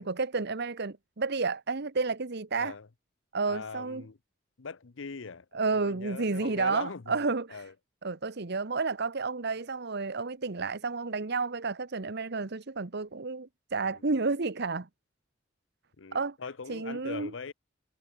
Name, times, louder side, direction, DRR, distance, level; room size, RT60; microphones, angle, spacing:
voice 1, 0.0-2.7 3.3-4.0 5.5-7.6 8.0-14.9 16.1-16.4 16.7-17.3, right 4 dB, 60° right, 1.1 m, -31 dB
voice 2, 2.5-2.9 3.4-4.2 4.6-5.5 5.8-7.1 7.5-7.7 13.8-14.0 16.0-17.5, left 4 dB, 70° left, 0.8 m, -41 dB
head